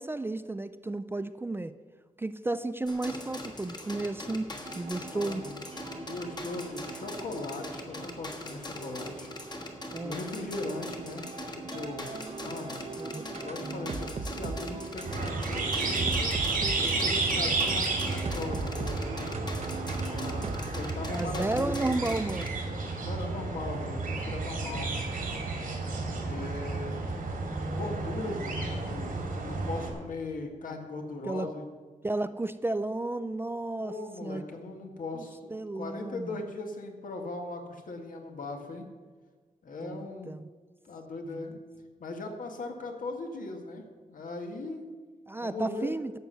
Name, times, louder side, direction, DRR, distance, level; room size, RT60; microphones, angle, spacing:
voice 1, 0.0-1.7 2.2-4.5 4.7-5.4 9.9-10.2 13.0-13.2 13.6-14.0 17.3-17.5 21.1-22.6 24.6-25.0 26.4-26.5 31.2-31.5 32.0-33.9 34.2-34.4 35.1-35.2 35.5-36.4 39.8-40.5 41.3-41.5 45.3-46.1, right 2 dB, 15° right, 12 dB, 0.3 m, -33 dB
sound 1, 2.9-22.5, left 2 dB, 30° left, 1.4 m, -42 dB
sound 2, 4.6-20.5, right 4 dB, 50° right, 0.9 m, -41 dB
voice 2, 5.0-5.6 5.9-9.4 10.0-12.1 12.4-12.8 13.4-16.4 16.8-19.3 20.0-22.0 23.0-24.9 26.2-27.0 27.7-29.2 29.4-31.7 33.8-38.9 39.6-40.4 40.9-41.5 42.0-44.8 45.4-45.9, left 2 dB, 75° left, 3 dB, 1.7 m, -39 dB
sound 3, 15.0-29.9, right 3 dB, 85° right, 2.7 m, -32 dB
12.0 x 7.8 x 6.8 m, 1.5 s
wide cardioid pair, 165°, 14 cm